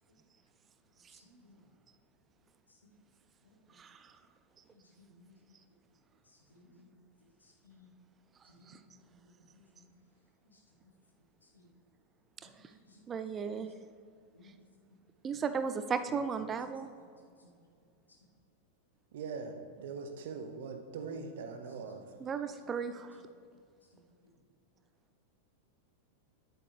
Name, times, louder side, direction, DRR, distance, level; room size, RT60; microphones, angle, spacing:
voice 1, 1.1-1.6 3.4-3.6 4.7-5.3 6.5-6.9 7.4-7.9 8.9-9.1 9.5-9.9 10.5-10.6 11.5-11.7 12.4-13.0 13.5-13.7 14.3-14.5 15.3-15.4 17.3-17.5 21.8-21.9, left 3 dB, 75° left, 0 dB, 1.4 m, -61 dB
voice 2, 3.8-4.1 8.7-8.8 13.1-13.7 15.2-16.9 22.2-23.1, right 6 dB, 25° right, 10 dB, 0.4 m, -35 dB
voice 3, 19.1-22.0, right 5 dB, 55° right, 6 dB, 0.9 m, -41 dB
10.0 x 8.4 x 3.4 m, 2.3 s
figure-of-eight pair, 90°, 0 cm